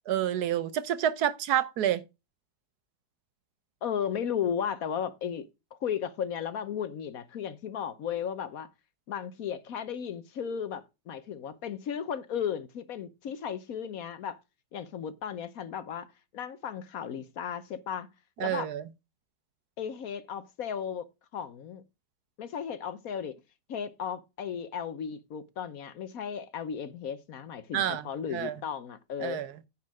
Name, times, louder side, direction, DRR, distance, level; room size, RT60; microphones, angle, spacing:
voice 1, 0.1-2.0 18.4-18.8 27.7-28.6 29.2-29.5, right 11 dB, 70° right, 1.2 m, -29 dB
voice 2, 3.8-5.5 5.8-8.7 9.1-14.4 14.7-18.1 18.4-18.7 19.8-21.1 21.3-21.8 22.4-23.3 23.7-29.4, left 8 dB, 60° left, 1.1 m, -35 dB
9.6 x 4.3 x 6.1 m
omnidirectional pair, 1.8 m